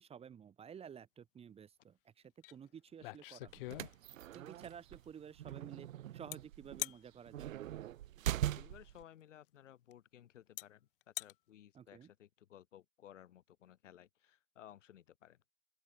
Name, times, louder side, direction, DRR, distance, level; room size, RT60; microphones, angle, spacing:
voice 1, 0.0-3.9 4.3-7.6 11.7-12.1, right 8 dB, 15° right, 5.7 m, -53 dB
sound 1, 2.4-2.5 2.9-4.3 6.3-6.4 6.8-7.0 8.9-9.0 9.9-10.0 10.6-10.7 11.0-11.3, left 19 dB, 40° left, 3.1 m, -43 dB
sound 2, 3.5-9.0, right 12 dB, 70° right, 0.6 m, -41 dB
voice 2, 8.5-15.4, left 11 dB, 55° left, 8.0 m, -58 dB
open air
hypercardioid pair, 145°, 42 cm